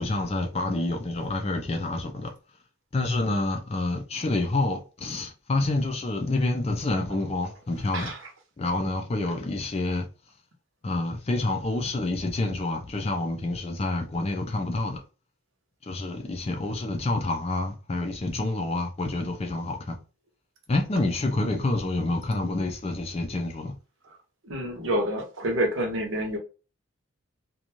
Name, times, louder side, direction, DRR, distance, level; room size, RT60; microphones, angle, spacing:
voice 1, 0.0-2.3 2.9-8.1 8.6-10.1 10.8-15.0 15.8-20.0 20.7-23.7, left 2 dB, 30° left, 0.4 m, -28 dB
voice 2, 7.9-8.3 24.4-26.4, equal, 70° right, 0.8 m, -28 dB
2.5 x 2.3 x 2.9 m
head